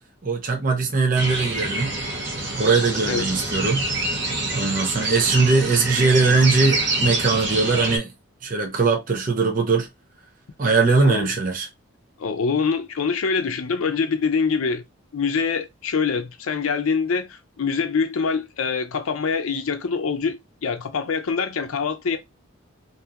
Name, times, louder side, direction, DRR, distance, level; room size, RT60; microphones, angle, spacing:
voice 1, 0.2-1.9 2.6-3.8 4.5-8.1 8.4-9.9 10.6-11.7, right 4 dB, 40° right, 0.6 m, -20 dB
sound 1, 1.1-8.0, right 2 dB, 55° right, 0.9 m, -26 dB
voice 2, 12.2-14.8 15.1-22.2, left 5 dB, 85° left, 0.5 m, -24 dB
2.8 x 2.6 x 2.4 m
head